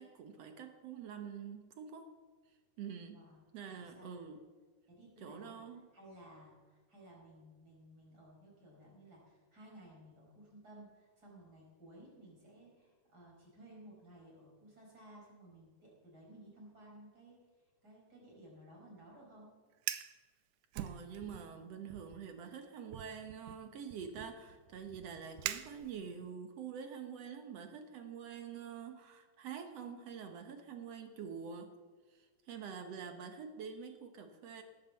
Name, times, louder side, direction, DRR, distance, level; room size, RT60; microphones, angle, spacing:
voice 1, 0.0-2.1 2.8-3.2 3.5-4.4 5.2-5.9 20.7-31.7 32.1-34.6, right 7 dB, 60° right, 6 dB, 2.0 m, -46 dB
voice 2, 3.7-4.2 4.9-5.6 5.9-17.4 17.8-19.5, right 1 dB, 30° right, -3 dB, 5.5 m, -57 dB
Fire, 19.7-20.2 20.7-21.5 21.9-22.2 22.9-26.3, right 13 dB, 90° right, 2.2 m, -44 dB
18.0 x 8.0 x 7.1 m, 1.4 s
omnidirectional pair, 3.6 m